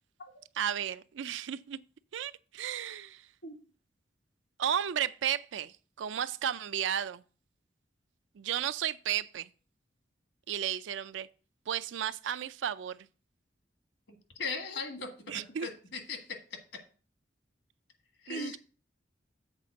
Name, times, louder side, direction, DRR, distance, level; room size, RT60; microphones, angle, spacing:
voice 1, 0.6-1.8 2.1-3.3 4.6-7.2 8.4-9.5 10.5-11.3 11.7-13.0 15.3-15.7 18.3-18.6, right 9 dB, 85° right, 0.4 m, -33 dB
voice 2, 14.1-15.1 15.6-16.2 18.2-18.6, left 4 dB, 75° left, 1.6 m, -38 dB
7.4 x 4.2 x 6.3 m
head